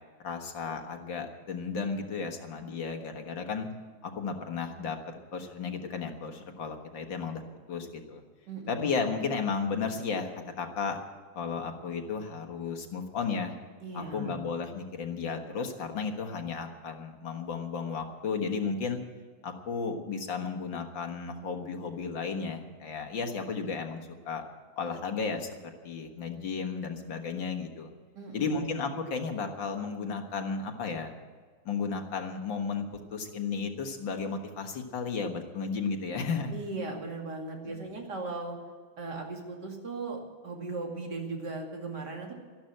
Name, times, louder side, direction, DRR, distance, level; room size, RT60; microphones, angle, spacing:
voice 1, 0.2-3.7 4.0-5.0 5.3-8.2 8.7-11.0 11.3-13.5 13.9-19.0 19.4-24.4 24.8-25.6 25.8-27.9 28.3-31.1 31.7-32.9 33.1-36.5 37.7-37.8, left 5 dB, 70° left, 5 dB, 2.3 m, -34 dB
voice 2, 8.5-8.9 13.8-14.5 28.1-28.8 36.5-38.6 39.0-42.3, right 3 dB, 55° right, 1 dB, 3.0 m, -37 dB
13.5 x 12.0 x 7.8 m, 1.5 s
omnidirectional pair, 2.2 m